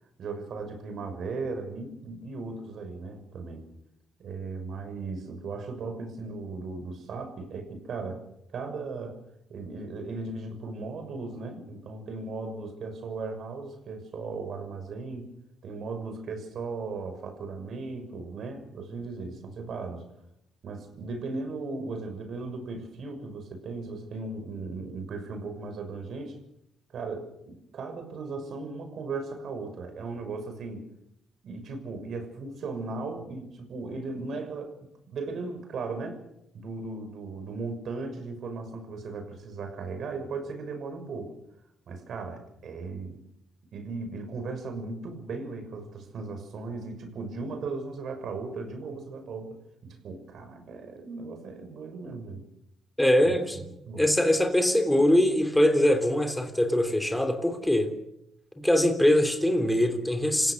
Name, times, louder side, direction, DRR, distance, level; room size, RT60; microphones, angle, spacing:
voice 1, 0.2-3.6 4.2-9.2 9.5-15.3 15.6-20.0 20.6-26.4 26.9-30.9 31.4-36.2 36.5-41.3 41.9-43.2 43.7-52.4 53.2-53.3 53.9-54.1, right 3 dB, 65° right, 6 dB, 6.3 m, -37 dB
voice 2, 53.0-57.9 58.6-60.5, left 1 dB, 5° left, 6 dB, 3.3 m, -23 dB
28.0 x 16.5 x 6.6 m, 0.80 s
cardioid pair, 90°, 0 cm